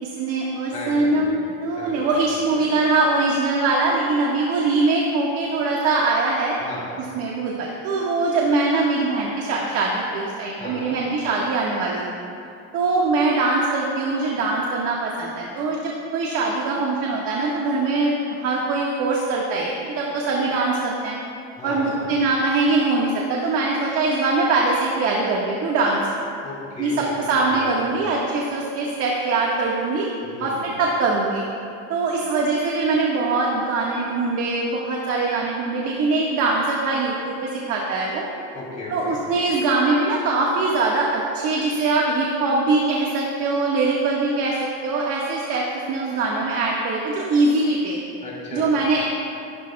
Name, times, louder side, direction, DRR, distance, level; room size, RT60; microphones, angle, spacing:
voice 1, 0.0-6.5 7.1-12.0 12.7-21.2 21.6-26.0 26.8-26.9 27.2-30.1 30.4-31.4 31.9-38.2 38.9-48.0 48.5-49.0, right 3 dB, 50° right, -3 dB, 1.7 m, -22 dB
voice 2, 0.7-2.1 2.5-2.7 6.6-6.9 10.5-11.0 21.5-22.0 26.4-27.8 30.2-30.6 38.5-39.2 48.2-48.7, left 2 dB, 25° left, -6 dB, 3.0 m, -36 dB
27.0 x 12.5 x 2.4 m, 2.5 s
cardioid pair, 175°, 31 cm